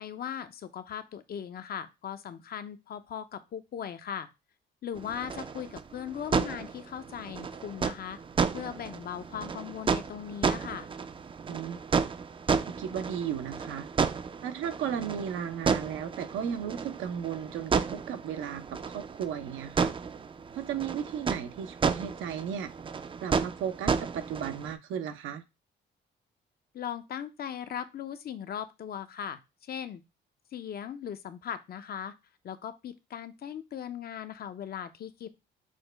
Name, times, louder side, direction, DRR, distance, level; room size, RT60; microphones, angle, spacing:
voice 1, 0.0-4.3 4.8-8.2 8.5-10.9 26.7-30.0 30.5-32.1 32.4-35.3, left 9 dB, 50° left, 0.5 m, -38 dB
sound 1, 4.9-24.7, right 5 dB, 25° right, 0.4 m, -32 dB
voice 2, 11.5-11.8 12.8-13.9 14.4-19.9 20.5-22.7 23.2-25.4, right 8 dB, 85° right, 0.6 m, -35 dB
6.2 x 2.1 x 3.2 m
cardioid pair, 90°, 20 cm